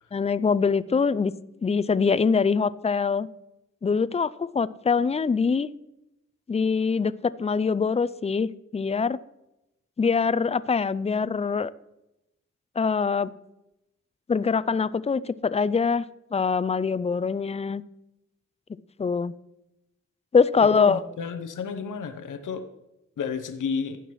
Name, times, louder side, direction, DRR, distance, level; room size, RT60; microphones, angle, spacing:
voice 1, 0.1-1.3 1.6-3.3 3.8-5.7 6.5-9.2 10.0-11.7 12.8-13.3 14.3-16.0 16.3-17.8 19.0-19.3 20.3-21.0, left 5 dB, 20° left, 17 dB, 0.4 m, -23 dB
voice 2, 20.6-22.7 23.2-24.0, left 6 dB, 85° left, 9 dB, 0.7 m, -32 dB
16.0 x 5.8 x 3.1 m, 0.90 s
cardioid pair, 45°, 30 cm